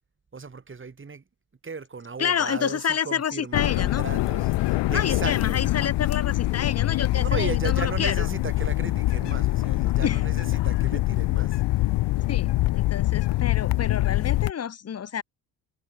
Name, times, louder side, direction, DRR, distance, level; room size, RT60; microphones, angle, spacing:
voice 1, 0.3-1.2 1.6-5.6 7.1-11.9, right 5 dB, 30° right, 4.0 m, -36 dB
voice 2, 2.2-4.0 4.9-8.3 10.0-10.2 10.9-11.0 12.3-15.2, left 8 dB, 40° left, 1.2 m, -29 dB
sound 1, 3.5-14.5, left 18 dB, 80° left, 1.0 m, -24 dB
cardioid pair, 85°, 41 cm